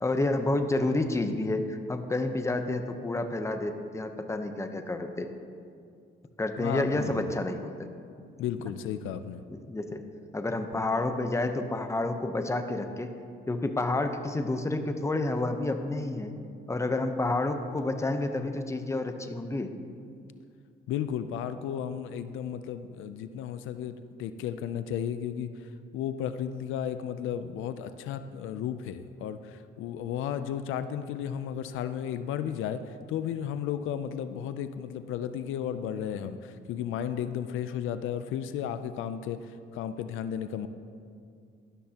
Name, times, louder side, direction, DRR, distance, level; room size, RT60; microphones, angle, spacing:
voice 1, 0.0-5.3 6.4-7.9 9.5-10.0 10.3-13.1 13.5-16.3 16.7-19.7, left 2 dB, 15° left, 7 dB, 0.8 m, -29 dB
voice 2, 6.6-7.3 8.4-9.4 20.9-32.8 33.1-40.7, left 9 dB, 90° left, 11 dB, 0.5 m, -34 dB
12.5 x 12.0 x 2.9 m, 2.3 s
cardioid pair, 90°, 20 cm